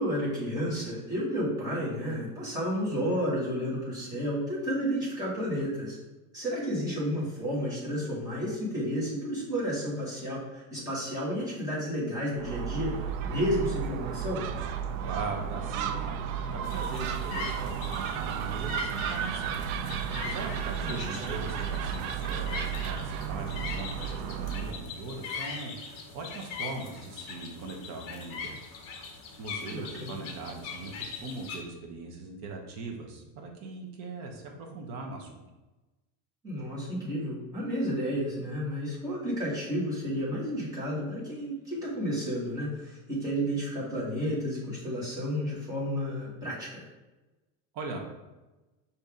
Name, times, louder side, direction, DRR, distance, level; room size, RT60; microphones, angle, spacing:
voice 1, 0.0-6.0 6.3-14.4 20.8-21.4 29.7-30.2 36.4-46.8, equal, 10° right, -9 dB, 1.5 m, -31 dB
Gull seagull, 12.4-24.8, right 7 dB, 80° right, 0.5 m, -33 dB
voice 2, 15.0-19.6 20.0-28.7 29.4-35.4 47.7-48.0, right 3 dB, 40° right, 1 dB, 0.7 m, -40 dB
sound 1, 16.6-31.6, left 5 dB, 45° left, 0.8 m, -41 dB
5.4 x 2.7 x 3.5 m, 1.1 s
cardioid pair, 175°, 43 cm